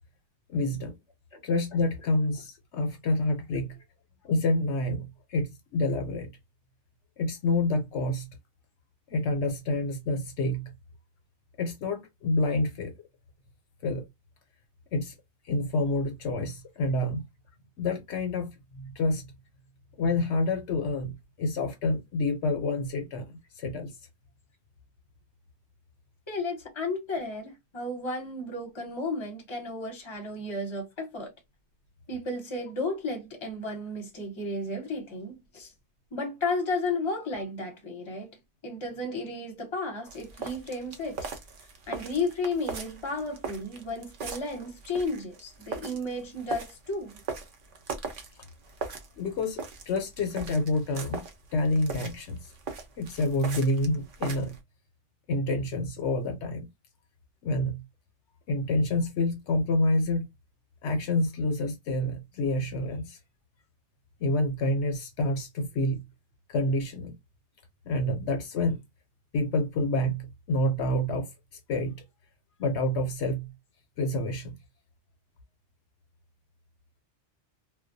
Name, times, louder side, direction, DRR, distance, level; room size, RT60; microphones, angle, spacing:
voice 1, 0.5-0.9 1.4-3.8 4.2-6.3 7.2-8.3 9.1-10.7 11.6-12.9 13.8-14.0 14.9-15.1 15.5-17.2 17.8-19.2 20.0-23.2 23.6-23.9 49.2-51.2 51.5-52.5 53.0-54.5 55.3-56.7 57.4-57.8 58.5-60.3 60.8-63.2 64.2-66.0 66.5-67.1 67.8-68.8 69.3-71.3 71.7-72.0 72.6-73.5 74.0-74.5, left 2 dB, 75° left, 0.9 m, -28 dB
voice 2, 26.3-31.3 32.1-35.7 36.1-38.3 38.6-41.2 41.9-47.2, left 2 dB, 25° left, 0.8 m, -33 dB
sound 1, 40.1-54.6, right 4 dB, 55° right, 0.7 m, -40 dB
2.2 x 2.2 x 2.5 m
omnidirectional pair, 1.2 m